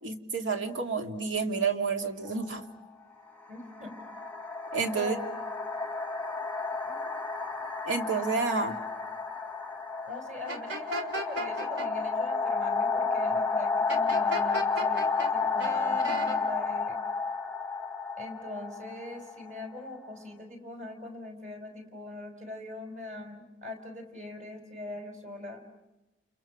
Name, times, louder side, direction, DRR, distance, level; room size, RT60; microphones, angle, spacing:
voice 1, 0.0-2.6 4.7-5.2 7.8-8.8, right 5 dB, 80° right, 4 dB, 2.5 m, -30 dB
sound 1, 2.3-2.5 3.4-20.1, left 4 dB, 10° left, 0.9 m, -31 dB
voice 2, 3.5-3.9 5.0-5.2 6.8-7.1 10.0-16.9 18.2-25.6, left 2 dB, 40° right, 5 dB, 4.6 m, -41 dB
sound 2, 10.5-11.9 13.9-15.3 15.6-16.4, right 1 dB, 65° right, 2.7 m, -35 dB
30.0 x 29.0 x 6.2 m, 1.1 s
head